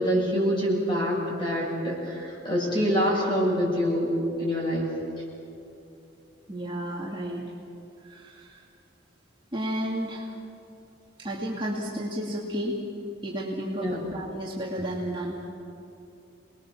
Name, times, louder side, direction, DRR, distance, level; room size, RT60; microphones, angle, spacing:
voice 1, 0.0-4.9 13.8-14.0, equal, 25° left, -3 dB, 7.6 m, -26 dB
voice 2, 6.5-7.4 8.0-8.6 9.5-10.3 11.2-12.8 13.2-15.4, equal, 25° right, -4 dB, 2.4 m, -32 dB
29.0 x 20.5 x 7.3 m, 2.8 s
head